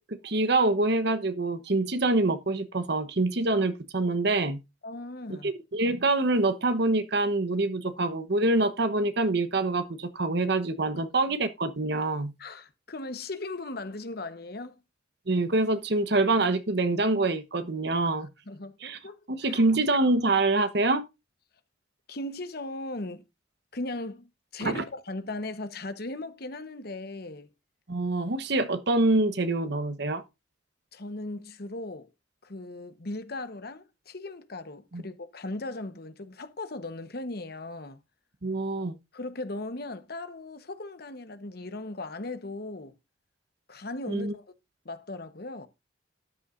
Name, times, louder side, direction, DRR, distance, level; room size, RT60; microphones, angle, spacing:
voice 1, 0.0-4.6 5.4-12.3 15.3-18.3 18.8-19.0 19.3-21.0 24.6-24.8 27.9-30.2 34.9-35.0 38.4-38.9 44.1-44.3, right 2 dB, 60° right, 1.1 m, -25 dB
voice 2, 4.8-5.5 12.4-14.8 18.5-19.7 22.1-23.2 23.7-27.5 30.9-32.1 32.4-38.0 39.1-42.9 43.7-44.4 44.8-45.7, left 2 dB, 55° left, 1.1 m, -38 dB
13.0 x 9.7 x 2.6 m
head